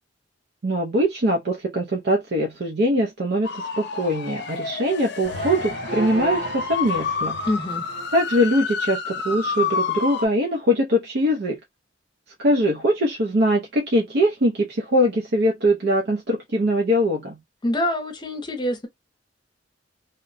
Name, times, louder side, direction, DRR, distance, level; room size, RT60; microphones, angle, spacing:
voice 1, 0.6-7.4 8.1-11.6 12.4-17.4, equal, 60° right, 0.6 m, -22 dB
sound 1, 3.4-10.3, left 5 dB, 65° left, 0.6 m, -29 dB
sound 2, 5.2-8.2, right 1 dB, 85° right, 1.5 m, -34 dB
voice 2, 7.5-7.9 17.6-18.9, left 1 dB, 25° left, 0.7 m, -25 dB
2.8 x 2.1 x 2.6 m
head